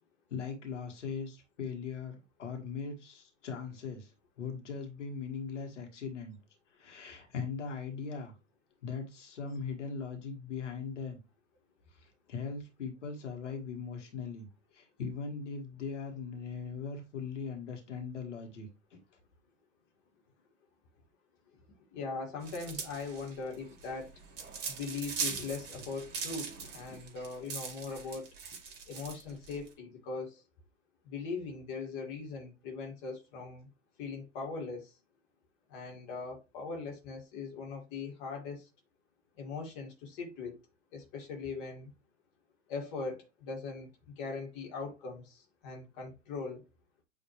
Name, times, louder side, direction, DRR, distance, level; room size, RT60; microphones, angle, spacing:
voice 1, 0.3-4.1 4.4-6.4 6.8-8.3 8.8-11.2 12.3-14.5 14.7-19.0, left 5 dB, 70° left, 2.1 m, -40 dB
voice 2, 21.9-24.1 24.7-28.3 28.9-30.4 31.0-33.7 34.0-34.9 35.7-38.7 39.4-40.6 40.9-41.9 42.7-43.9 44.2-46.6, left 4 dB, 40° left, 2.3 m, -40 dB
sound 1, 22.4-29.7, right 5 dB, 25° right, 2.2 m, -41 dB
9.0 x 3.5 x 3.3 m
figure-of-eight pair, 105°, 38 cm